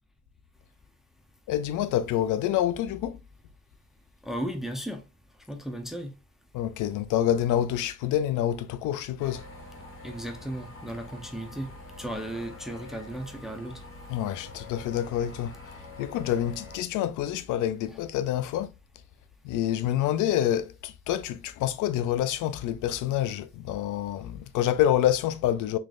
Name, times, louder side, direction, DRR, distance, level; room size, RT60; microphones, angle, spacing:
voice 1, 1.5-3.2 6.5-9.4 14.1-15.6 16.0-18.7 19.4-25.8, left 11 dB, 90° left, 0.5 m, -27 dB
voice 2, 4.2-5.0 5.5-6.1 10.0-11.7 12.0-13.8, right 1 dB, ahead, 0.7 m, -35 dB
sound 1, 9.2-16.8, left 2 dB, 45° left, 1.5 m, -45 dB
3.9 x 3.2 x 2.5 m
cardioid pair, 90°, 30 cm